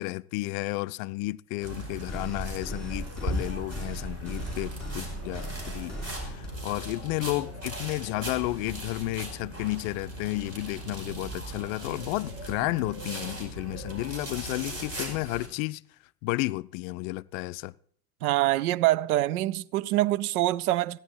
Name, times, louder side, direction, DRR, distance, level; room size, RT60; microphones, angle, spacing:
voice 1, 0.0-15.8 16.2-17.7, left 21 dB, 60° left, 0.5 m, -32 dB
sound 1, 1.6-15.5, right 1 dB, 30° right, 5.1 m, -38 dB
sound 2, 2.1-6.5, right 1 dB, ahead, 7.6 m, -38 dB
voice 2, 18.2-21.0, right 16 dB, 75° right, 0.6 m, -25 dB
15.5 x 10.5 x 4.4 m
hypercardioid pair, 75°, 45 cm